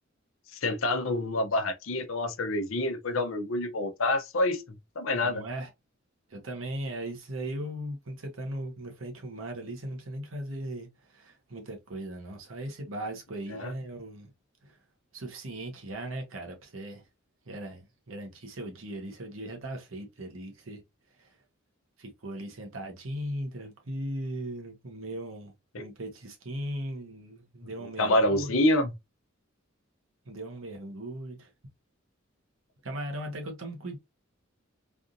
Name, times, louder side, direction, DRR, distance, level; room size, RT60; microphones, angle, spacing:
voice 1, 0.5-4.6 5.0-5.4 13.5-13.7 25.7-25.9 28.0-28.9, left 1 dB, 75° left, 0.7 m, -27 dB
voice 2, 5.1-5.7 6.3-14.3 14.6-14.8 15.1-17.0 17.5-20.8 21.2-21.3 22.0-28.6 30.3-31.5 32.8-34.0, right 1 dB, 75° right, 1.1 m, -38 dB
3.4 x 2.6 x 2.5 m
head